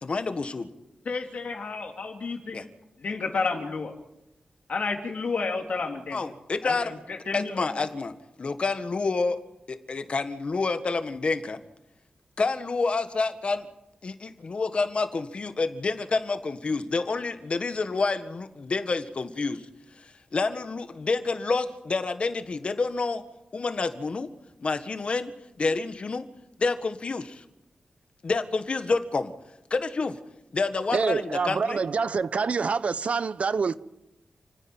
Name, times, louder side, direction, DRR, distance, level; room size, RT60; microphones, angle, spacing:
voice 1, 0.0-0.6 2.5-2.6 6.1-6.9 7.3-8.1 8.4-9.4 9.7-11.6 12.4-13.7 14.0-19.6 20.0-23.2 23.5-24.3 24.6-26.3 26.6-27.4 28.2-29.3 29.7-30.2 30.5-31.8, left 3 dB, 50° left, 1.6 m, -28 dB
voice 2, 1.1-2.7 3.0-3.9 4.7-6.2 6.6-7.6, left 4 dB, 65° left, 3.3 m, -31 dB
voice 3, 30.9-33.8, right 5 dB, 60° right, 0.7 m, -26 dB
30.0 x 10.0 x 9.0 m
wide cardioid pair, 105°, 3 cm